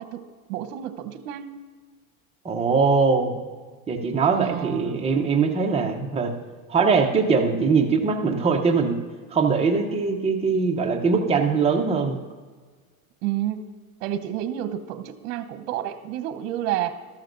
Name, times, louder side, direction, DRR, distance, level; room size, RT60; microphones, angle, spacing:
voice 1, 0.0-1.5 4.3-5.0 13.2-13.7 14.0-16.9, right 12 dB, 60° right, 9 dB, 1.0 m, -30 dB
voice 2, 2.4-3.4 3.9-6.3 6.7-9.0 9.3-12.2, right 5 dB, 15° right, 2 dB, 0.8 m, -21 dB
13.5 x 13.0 x 2.6 m, 1.5 s
supercardioid pair, 135°, 44 cm